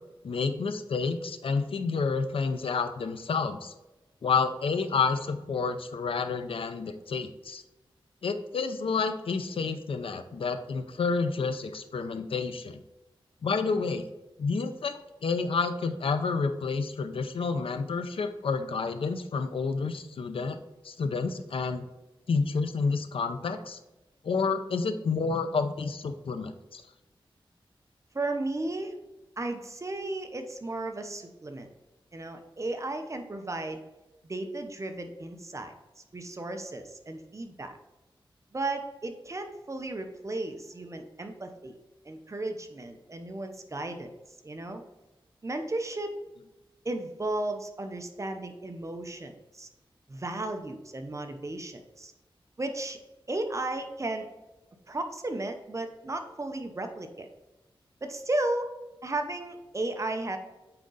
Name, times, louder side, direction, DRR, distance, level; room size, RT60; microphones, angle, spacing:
voice 1, 0.2-3.7 4.2-7.6 8.2-12.8 13.4-14.1 14.4-14.9 15.2-20.6 20.8-21.8 22.3-23.8 24.2-26.8, left 4 dB, 75° left, 9 dB, 0.6 m, -29 dB
voice 2, 28.1-29.0 29.4-31.7 32.1-33.8 34.2-35.7 36.1-37.8 38.5-41.8 42.0-44.1 44.4-44.8 45.4-46.2 46.8-49.7 50.1-52.1 52.6-53.0 53.3-54.3 54.9-57.3 58.0-58.7 59.0-60.4, right 2 dB, 35° right, 6 dB, 0.8 m, -34 dB
8.8 x 3.8 x 3.9 m, 1.1 s
wide cardioid pair, 90°, 9 cm